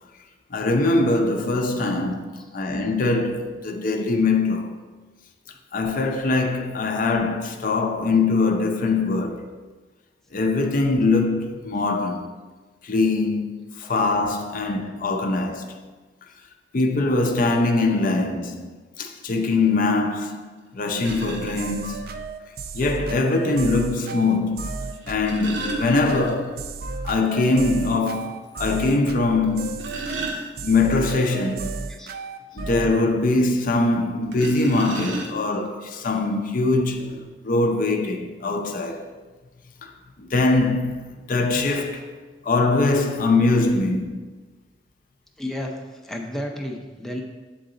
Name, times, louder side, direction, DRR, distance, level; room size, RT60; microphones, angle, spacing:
voice 1, 0.5-4.7 5.7-9.4 10.3-12.3 12.8-13.4 13.7-15.7 16.7-18.7 19.0-20.4 20.7-22.1 22.7-26.6 27.0-29.7 30.6-31.8 32.5-39.1 39.8-39.9 40.2-42.1 42.4-44.2, left 3 dB, 50° left, 0.5 m, -22 dB
sound 1, 20.3-20.4 21.0-21.6 23.0-23.1 24.9-26.7 27.0-27.1 27.5-27.6 28.1-28.2 29.4-31.0 34.3-35.7 36.5-36.6 37.0-37.2, right 2 dB, 80° right, 1.0 m, -33 dB
sound 2, 21.1-32.9, right 4 dB, 60° right, 0.4 m, -34 dB
voice 2, 45.4-45.7 46.0-47.2, left 1 dB, ahead, 0.5 m, -32 dB
7.5 x 3.9 x 3.8 m
head